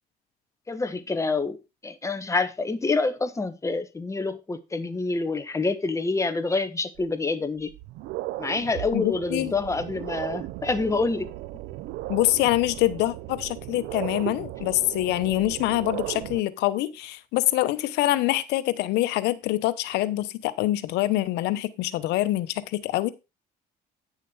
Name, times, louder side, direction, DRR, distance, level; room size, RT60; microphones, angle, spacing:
voice 1, 0.7-1.6 1.8-7.7 8.4-11.3, left 3 dB, 20° left, 1.4 m, -27 dB
sound 1, 7.0-7.1 7.6-16.4, right 17 dB, 85° right, 0.5 m, -36 dB
voice 2, 8.9-9.5 12.1-23.1, left 16 dB, 90° left, 1.0 m, -25 dB
10.0 x 6.8 x 4.6 m
cardioid pair, 110°, 17 cm